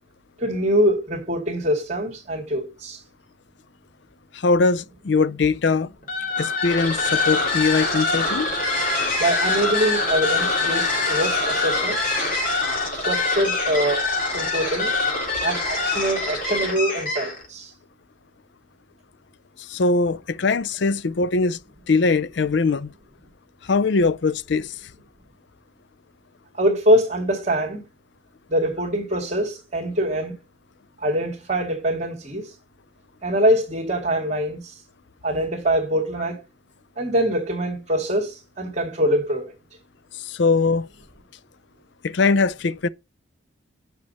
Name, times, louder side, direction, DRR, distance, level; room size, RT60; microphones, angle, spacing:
voice 1, 0.4-3.0 9.2-12.0 12.9-14.0 14.3-14.9 15.4-17.7 26.5-27.8 28.5-30.4 31.0-32.5 33.2-34.8 35.2-36.4 37.0-39.5, equal, 35° right, 2.2 m, -24 dB
voice 2, 4.3-5.9 6.4-8.5 19.6-21.6 21.9-22.9 23.6-24.7 40.1-40.9 42.0-42.9, left 4 dB, 60° left, 0.5 m, -21 dB
sound 1, 6.0-17.5, left 3 dB, 40° left, 3.4 m, -24 dB
9.5 x 6.7 x 4.1 m
head